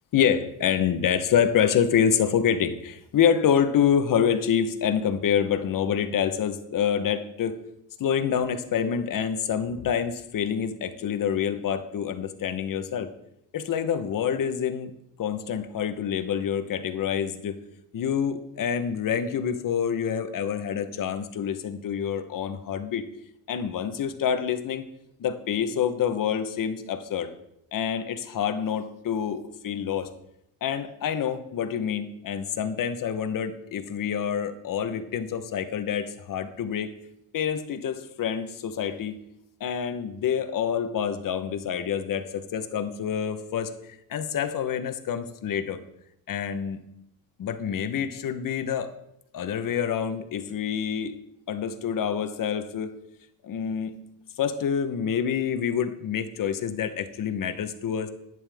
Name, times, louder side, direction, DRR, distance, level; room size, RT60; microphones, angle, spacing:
voice 1, 0.1-7.6 8.0-13.1 13.5-14.9 15.2-17.6 17.9-23.0 23.5-24.8 25.2-27.3 27.7-30.1 30.6-36.9 37.3-39.2 39.6-43.7 44.1-45.8 46.3-46.8 47.4-48.9 49.3-51.2 51.5-53.0 53.4-54.0 54.4-58.1, left 8 dB, 60° left, 9 dB, 1.1 m, -27 dB
11.0 x 9.5 x 3.5 m, 0.81 s
cardioid pair, 100°, 36 cm